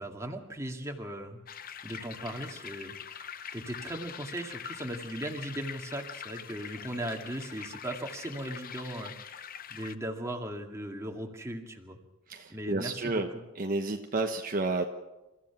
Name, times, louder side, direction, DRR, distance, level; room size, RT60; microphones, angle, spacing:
voice 1, 0.0-1.4 1.8-3.3 3.5-12.0 12.5-13.2, right 1 dB, 15° right, 2 dB, 2.1 m, -38 dB
sound 1, 1.5-9.9, left 8 dB, 45° left, 0.8 m, -44 dB
voice 2, 12.3-13.3 13.5-14.8, right 2 dB, 45° right, 4 dB, 1.1 m, -31 dB
29.5 x 15.0 x 6.0 m, 1.0 s
head